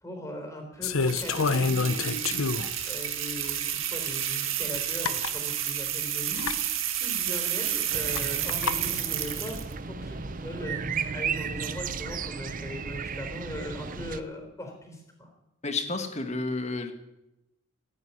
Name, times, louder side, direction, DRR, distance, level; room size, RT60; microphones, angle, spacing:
voice 1, 0.0-6.6 7.0-15.3, equal, 15° left, 3 dB, 4.0 m, -39 dB
sound 1, 0.8-2.8 3.5-3.6 4.7-4.8 5.0-5.4 6.3-6.6 8.2-8.8, left 4 dB, 80° left, 0.8 m, -27 dB
sound 2, 1.0-9.7, right 11 dB, 70° right, 1.9 m, -31 dB
sound 3, 7.9-14.2, right 5 dB, 40° right, 0.7 m, -34 dB
voice 2, 15.6-16.9, left 3 dB, 30° left, 7 dB, 1.7 m, -31 dB
14.5 x 9.7 x 9.7 m, 0.92 s
head